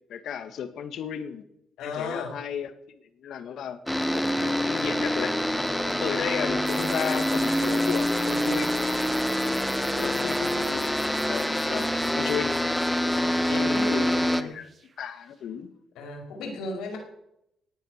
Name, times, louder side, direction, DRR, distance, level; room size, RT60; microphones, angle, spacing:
voice 1, 0.1-1.4 1.8-3.8 4.1-5.3 5.9-8.7 10.0-12.5 13.5-14.1 14.4-14.7 15.0-15.7, left 8 dB, 70° left, 10 dB, 1.9 m, -34 dB
voice 2, 1.8-2.4 9.8-10.2 13.0-14.6 16.0-17.0, left 3 dB, 90° left, 3 dB, 5.3 m, -35 dB
sound 1, 3.9-14.4, equal, 5° left, 1.3 m, -26 dB
sound 2, 6.7-15.2, right 5 dB, 40° right, 1.4 m, -45 dB
19.0 x 9.2 x 6.7 m, 0.78 s
cardioid pair, 90°, 0 cm